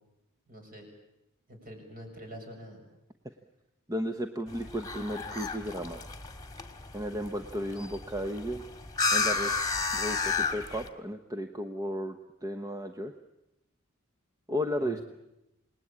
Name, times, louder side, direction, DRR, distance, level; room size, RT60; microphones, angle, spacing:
voice 1, 0.5-0.9 1.5-2.8 14.8-15.0, equal, 45° right, 3 dB, 6.8 m, -46 dB
voice 2, 3.9-6.0 6.9-8.6 9.1-9.6 9.9-13.1 14.5-15.0, equal, 15° right, 6 dB, 1.0 m, -34 dB
sound 1, 4.5-10.9, left 4 dB, 20° left, 1.8 m, -32 dB
27.5 x 20.0 x 8.8 m, 0.91 s
head